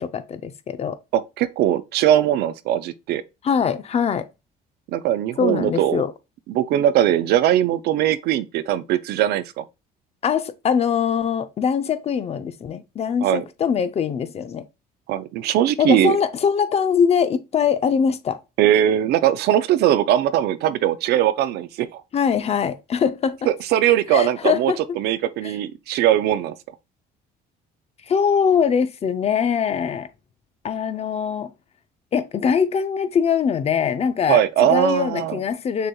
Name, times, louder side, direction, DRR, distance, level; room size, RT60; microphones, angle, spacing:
voice 1, 0.0-1.0 3.4-4.3 5.4-6.1 10.2-14.6 15.8-18.4 22.1-23.4 24.1-24.8 25.4-25.5 28.1-30.1 30.6-31.5 32.1-35.9, left 7 dB, 40° left, 0.5 m, -22 dB
voice 2, 1.1-3.2 4.9-6.0 6.5-9.6 13.2-13.4 15.1-16.2 18.6-22.0 23.5-26.5 34.3-35.4, right 11 dB, 75° right, 0.4 m, -20 dB
6.3 x 2.8 x 2.2 m
cardioid pair, 110°, 17 cm